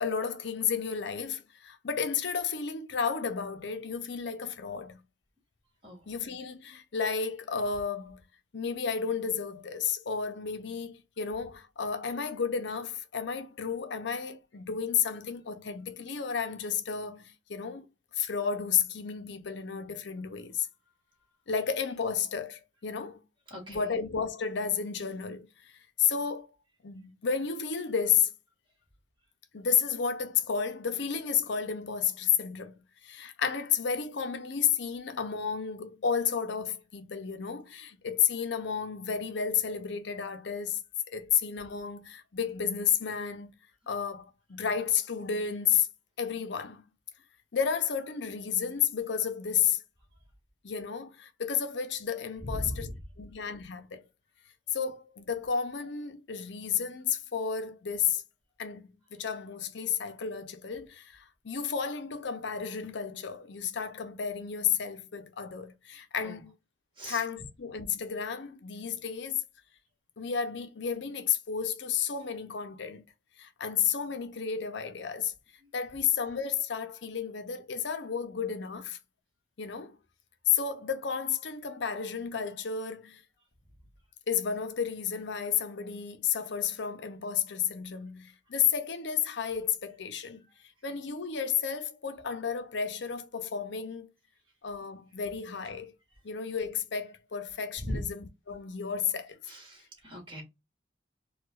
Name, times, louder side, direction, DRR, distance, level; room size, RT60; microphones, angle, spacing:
voice 1, 0.0-5.0 6.1-8.2 8.5-17.9 18.2-20.7 21.5-23.2 23.7-25.7 26.0-26.5 26.8-28.3 29.5-32.7 33.0-40.8 41.1-43.5 43.9-45.9 46.2-46.8 47.5-49.8 50.6-52.9 53.2-54.0 54.7-58.2 58.6-66.5 67.0-69.4 70.2-73.0 73.4-75.3 75.7-79.0 79.6-80.0 80.5-83.2 84.3-90.4 90.8-94.1 94.6-95.9 96.2-99.4, left 7 dB, 65° left, 0.6 m, -32 dB
voice 2, 23.5-23.9 52.4-52.9 66.2-66.4 67.0-67.2 80.8-80.9 97.8-98.0 99.5-100.4, equal, 25° right, 1.7 m, -38 dB
4.7 x 2.4 x 2.4 m
head